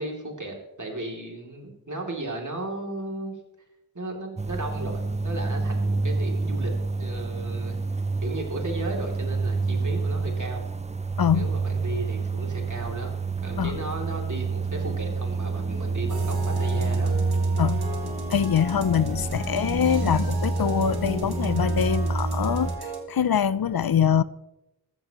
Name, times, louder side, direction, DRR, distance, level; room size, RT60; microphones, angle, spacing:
voice 1, 0.0-3.3 3.9-7.8 8.2-10.6 11.3-17.1 19.2-19.4, right 2 dB, 50° right, 2.8 m, -35 dB
sound 1, 4.4-22.8, right 3 dB, 20° right, 0.5 m, -28 dB
sound 2, 16.1-23.0, right 2 dB, 80° right, 2.1 m, -37 dB
voice 2, 18.3-22.7 23.1-24.2, left 8 dB, 70° left, 0.5 m, -23 dB
14.0 x 14.0 x 3.0 m
wide cardioid pair, 55°, 37 cm